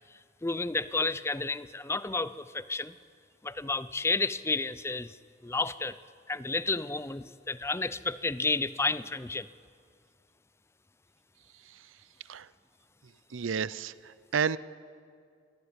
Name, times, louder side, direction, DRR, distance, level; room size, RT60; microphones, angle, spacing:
voice 1, 0.4-3.0 3.4-5.2 5.4-6.0 6.3-9.5, left 3 dB, 15° left, 16 dB, 0.5 m, -31 dB
voice 2, 13.3-14.6, right 6 dB, 90° right, 18 dB, 0.6 m, -31 dB
23.0 x 16.0 x 9.8 m, 2.2 s
head